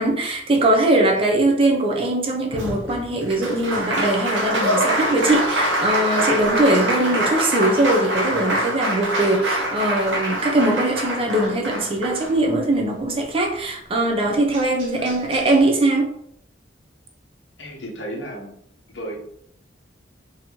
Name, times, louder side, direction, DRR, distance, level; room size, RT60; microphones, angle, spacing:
voice 1, 0.0-16.1, right 1 dB, 30° right, 1 dB, 0.6 m, -21 dB
Applause, 2.5-12.8 14.2-14.3 14.5-15.5, right 1 dB, 85° right, 0.9 m, -25 dB
voice 2, 17.6-18.6 18.9-19.2, equal, 80° left, 1 dB, 0.9 m, -35 dB
3.9 x 2.7 x 2.9 m, 0.70 s
head